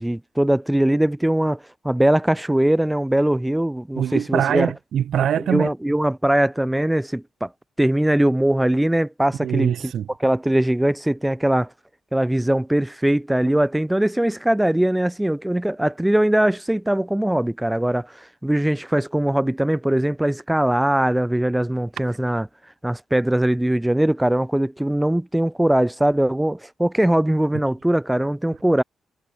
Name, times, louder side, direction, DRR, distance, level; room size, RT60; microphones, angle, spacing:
voice 1, 0.0-4.7 5.4-7.5 7.8-9.7 10.2-11.7 12.1-22.5 22.8-28.8, right 1 dB, 5° right, 2.5 m, -21 dB
voice 2, 3.9-5.7 9.4-10.1, right 9 dB, 75° right, 5.7 m, -23 dB
cardioid pair, 85°, 0 cm